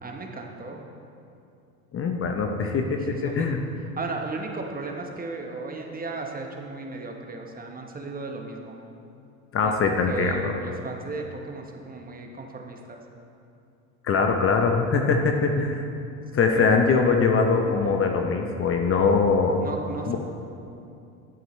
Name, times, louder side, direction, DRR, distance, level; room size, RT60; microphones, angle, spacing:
voice 1, 0.0-0.8 3.0-3.5 4.0-8.8 9.6-13.0 16.5-16.8 19.6-20.2, right 3 dB, 20° right, 2 dB, 1.1 m, -35 dB
voice 2, 1.9-3.6 9.5-10.5 14.0-15.8 16.3-19.7 20.1-20.2, left 4 dB, 30° left, 4 dB, 0.8 m, -22 dB
12.5 x 7.8 x 3.2 m, 2.6 s
hypercardioid pair, 75°, 42 cm